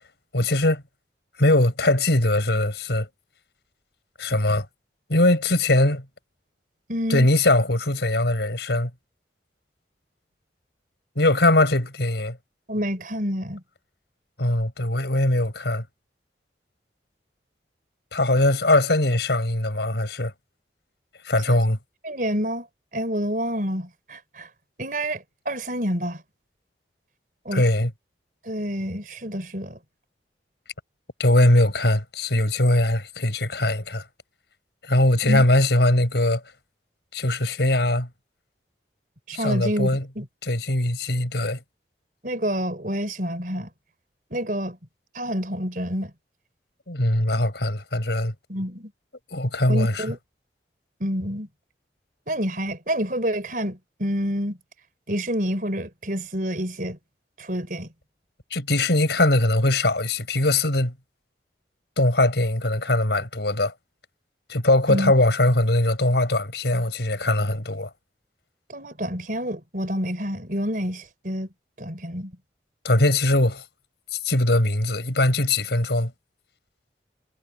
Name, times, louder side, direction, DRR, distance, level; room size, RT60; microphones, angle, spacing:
voice 1, 0.3-0.8 1.4-3.1 4.2-4.7 5.1-6.0 7.1-8.9 11.2-12.4 14.4-15.8 18.1-20.3 21.2-21.8 27.5-27.9 31.2-34.0 34.8-36.4 37.1-38.1 39.3-40.1 40.4-41.6 46.9-48.3 49.3-50.0 58.5-60.9 62.0-63.7 64.5-67.9 72.8-73.6 74.1-76.1, left 1 dB, 70° left, 4.4 m, -21 dB
voice 2, 6.9-7.3 12.7-13.6 21.5-21.6 22.0-22.7 22.9-24.5 24.8-26.2 27.4-27.6 28.4-29.8 35.2-35.4 39.3-39.9 40.2-40.3 42.2-43.7 44.3-44.8 45.1-46.1 48.5-48.9 49.7-50.2 51.0-51.5 52.3-54.6 55.1-57.0 57.4-57.9 64.9-65.1 68.7-71.5 71.8-72.3, equal, 50° right, 4.6 m, -28 dB
head